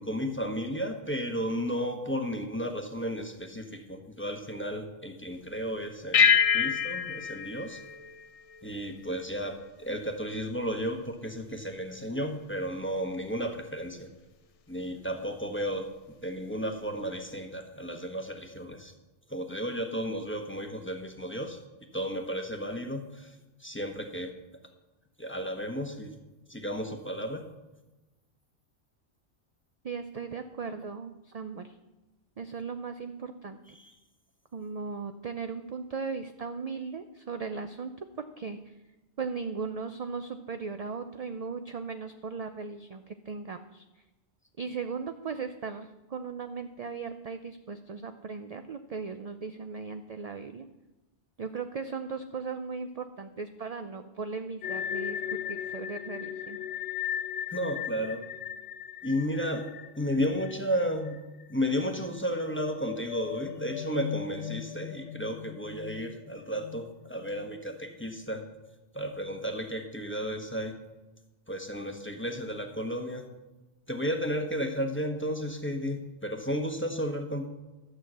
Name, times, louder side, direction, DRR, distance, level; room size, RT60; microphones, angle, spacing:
voice 1, 0.0-7.8 8.6-14.1 14.7-15.9 16.2-18.9 19.3-21.6 21.9-23.3 23.6-24.3 25.2-26.1 26.5-27.4 33.8-33.9 57.5-58.2 59.0-59.7 60.0-61.2 61.5-68.4 68.9-70.8 71.5-73.2 73.9-77.5, equal, 10° left, 4 dB, 1.1 m, -33 dB
sound 1, 6.1-8.9, left 7 dB, 50° left, 0.4 m, -26 dB
voice 2, 29.8-31.7 32.4-33.6 34.5-38.0 38.4-38.8 39.2-43.8 44.6-50.7 51.4-56.6, right 5 dB, 45° right, 8 dB, 0.5 m, -37 dB
sound 2, 54.6-61.5 61.7-61.9 62.4-67.8, left 10 dB, 70° left, 1.0 m, -38 dB
12.0 x 6.2 x 7.6 m, 1.1 s
omnidirectional pair, 1.2 m